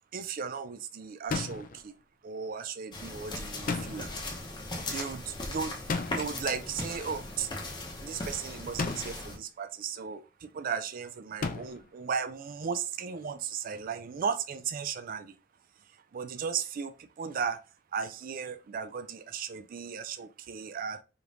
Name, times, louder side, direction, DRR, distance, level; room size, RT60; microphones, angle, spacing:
voice 1, 0.1-1.9 2.2-4.1 4.9-7.5 8.0-15.3 16.1-17.6 17.9-21.0, right 6 dB, 50° right, 0.4 m, -36 dB
sound 1, 1.3-1.8 3.7-4.3 5.9-6.4 8.8-9.3 11.4-11.9, left 4 dB, 50° left, 0.5 m, -34 dB
sound 2, 2.9-9.4, left 2 dB, 25° left, 0.9 m, -38 dB
5.0 x 3.0 x 2.5 m
head